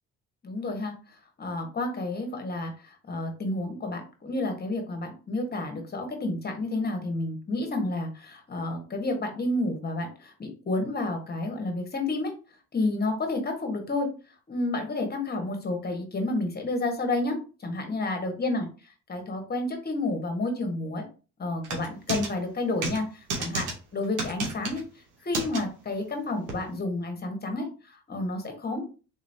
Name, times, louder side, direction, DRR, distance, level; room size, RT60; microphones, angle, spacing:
voice 1, 0.4-0.9 1.4-12.3 12.7-14.1 14.5-18.7 19.1-21.0 21.4-24.8 25.2-28.8, left 2 dB, 30° left, 4 dB, 1.3 m, -30 dB
sound 1, 21.6-22.3 22.8-23.0 23.3-23.7 24.2-24.8 25.3-25.6 26.5-26.6, right 3 dB, 85° right, 1.2 m, -31 dB
3.9 x 2.9 x 2.7 m, 0.35 s
cardioid pair, 90°, 30 cm